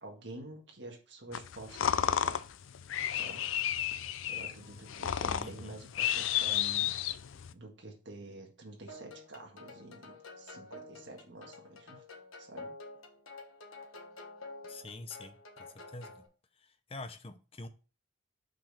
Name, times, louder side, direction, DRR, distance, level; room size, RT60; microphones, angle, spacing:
voice 1, 0.0-2.5 3.1-3.5 4.3-6.9 7.5-12.0 12.4-12.7, right 2 dB, 55° right, 1 dB, 1.8 m, -48 dB
sound 1, 1.3-7.5, left 9 dB, 70° left, 0.4 m, -32 dB
voice 2, 5.4-5.8 14.6-16.2 16.6-17.7, left 2 dB, 30° left, 9 dB, 0.6 m, -46 dB
sound 2, 8.9-16.3, left 2 dB, 90° left, 1.4 m, -49 dB
6.0 x 5.3 x 4.1 m, 0.34 s
head